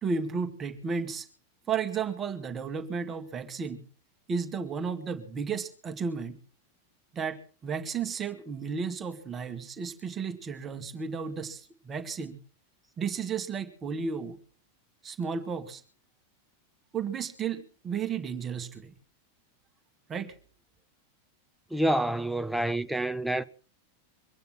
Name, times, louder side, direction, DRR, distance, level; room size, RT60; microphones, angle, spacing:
voice 1, 0.0-1.3 1.7-3.8 4.3-6.4 7.1-12.4 13.0-14.4 15.0-15.8 16.9-18.9 20.1-20.3, right 6 dB, 20° right, 2.0 m, -33 dB
voice 2, 21.7-23.4, right 1 dB, ahead, 0.8 m, -27 dB
24.0 x 9.2 x 6.0 m
figure-of-eight pair, 90°, 0 cm